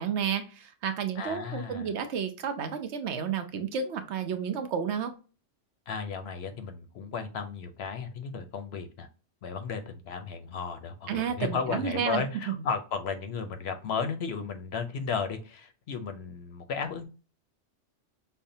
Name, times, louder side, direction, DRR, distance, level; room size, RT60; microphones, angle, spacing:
voice 1, 0.0-5.1 11.1-12.6, right 7 dB, 70° right, 8 dB, 0.9 m, -31 dB
voice 2, 1.2-1.9 5.9-9.1 9.4-17.0, left 5 dB, 65° left, 7 dB, 0.8 m, -34 dB
5.4 x 2.1 x 2.6 m, 0.35 s
omnidirectional pair, 1.2 m